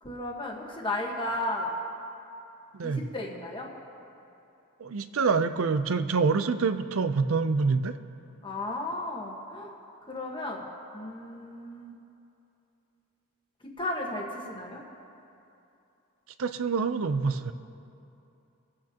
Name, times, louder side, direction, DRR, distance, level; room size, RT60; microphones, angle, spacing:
voice 1, 0.0-1.7 2.8-3.7 8.4-9.7 10.1-10.7 10.9-11.9 13.8-14.8, left 1 dB, 20° left, -1 dB, 1.3 m, -34 dB
voice 2, 2.7-3.1 4.8-7.9 16.4-17.5, right 4 dB, 70° right, 11 dB, 0.5 m, -26 dB
24.5 x 8.6 x 2.9 m, 2.8 s
head